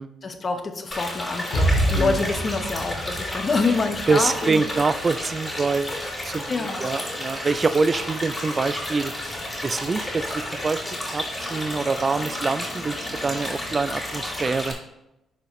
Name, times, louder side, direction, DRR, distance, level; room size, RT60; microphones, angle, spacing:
voice 1, 0.2-4.6 6.5-6.9, left 4 dB, 40° left, 7 dB, 0.9 m, -26 dB
sound 1, 0.9-14.7, left 1 dB, 15° left, 2.6 m, -32 dB
Explosion, 1.5-5.3, right 1 dB, 80° left, 2.5 m, -27 dB
voice 2, 4.1-6.0 6.2-9.1 9.6-10.8 11.1-14.8, right 4 dB, 35° right, 13 dB, 0.3 m, -25 dB
9.8 x 4.7 x 3.1 m, 0.92 s
cardioid pair, 90°, 0 cm